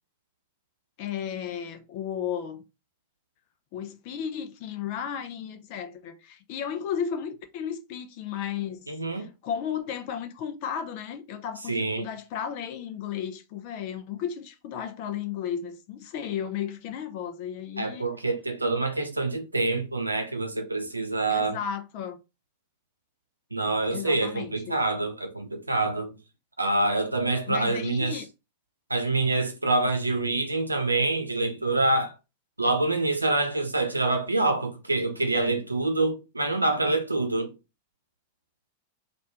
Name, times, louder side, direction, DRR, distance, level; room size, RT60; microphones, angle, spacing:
voice 1, 1.0-2.6 3.7-18.1 21.3-22.2 23.9-24.8 27.5-28.3, left 8 dB, 45° left, 0.6 m, -34 dB
voice 2, 8.9-9.3 11.7-12.1 17.8-21.6 23.5-26.2 26.6-28.2 28.9-32.1 32.6-37.5, right 2 dB, 80° right, 0.7 m, -26 dB
3.3 x 2.6 x 4.3 m
figure-of-eight pair, 90°, 0 cm